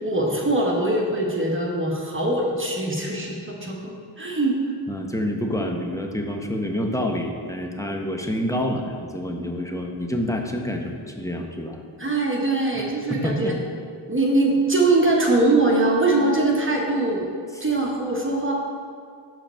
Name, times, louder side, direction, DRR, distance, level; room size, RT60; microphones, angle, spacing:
voice 1, 0.0-4.6 12.0-13.6 14.1-17.2 17.6-18.5, right 2 dB, 25° right, -2 dB, 1.2 m, -22 dB
voice 2, 4.9-11.8 13.1-13.6 17.5-17.7, left 1 dB, 5° left, 2 dB, 0.9 m, -27 dB
6.0 x 4.9 x 4.4 m, 2.2 s
cardioid pair, 50°, 48 cm